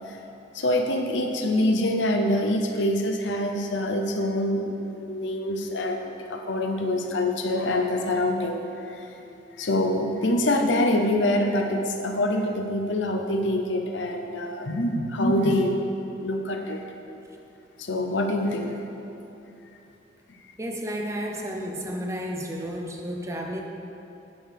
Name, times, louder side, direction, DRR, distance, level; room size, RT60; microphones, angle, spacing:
voice 1, 0.5-9.1 9.6-15.8 16.2-16.8 17.8-18.8, left 1 dB, 80° left, 4 dB, 0.7 m, -25 dB
voice 2, 20.6-23.6, equal, 15° right, 1 dB, 0.6 m, -32 dB
9.4 x 6.5 x 3.5 m, 2.9 s
head